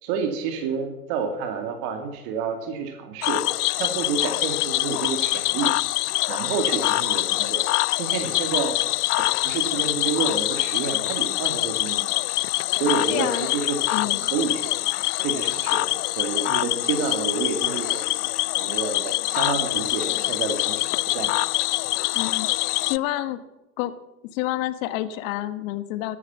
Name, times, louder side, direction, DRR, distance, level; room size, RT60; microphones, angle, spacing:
voice 1, 0.0-3.4 3.7-5.7 6.3-7.7 8.0-8.8 9.4-12.1 12.8-14.8 15.2-15.9 16.2-18.0 18.5-21.4, right 5 dB, 50° right, 5 dB, 2.6 m, -29 dB
Cricket / Frog, 3.2-23.0, left 19 dB, 70° left, 0.5 m, -25 dB
voice 2, 13.1-13.5 13.9-14.2 22.1-22.5 22.8-23.4 23.8-23.9 24.3-26.2, left 14 dB, 50° left, 12 dB, 1.4 m, -28 dB
13.5 x 11.5 x 7.1 m, 0.99 s
hypercardioid pair, 120°, 49 cm